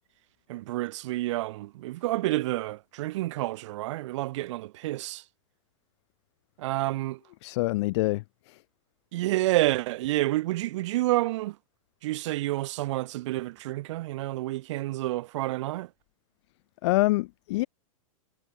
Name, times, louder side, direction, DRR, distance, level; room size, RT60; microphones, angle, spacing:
voice 1, 0.5-5.2 6.6-7.2 9.1-11.5 12.0-15.9, right 17 dB, 60° right, 1.4 m, -29 dB
voice 2, 7.4-8.2 8.5-8.6 16.8-17.7, left 21 dB, 55° left, 1.4 m, -25 dB
supercardioid pair, 145°, 17 cm